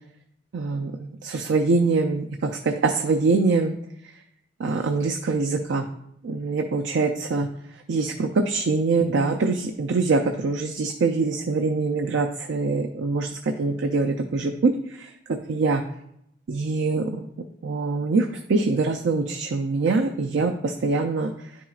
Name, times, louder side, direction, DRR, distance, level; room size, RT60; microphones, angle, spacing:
voice 1, 0.5-3.7 4.6-5.8 6.2-7.5 7.9-15.8 16.5-17.3 17.6-21.5, right 3 dB, 75° right, 4 dB, 0.4 m, -24 dB
10.0 x 4.4 x 2.4 m, 0.78 s
head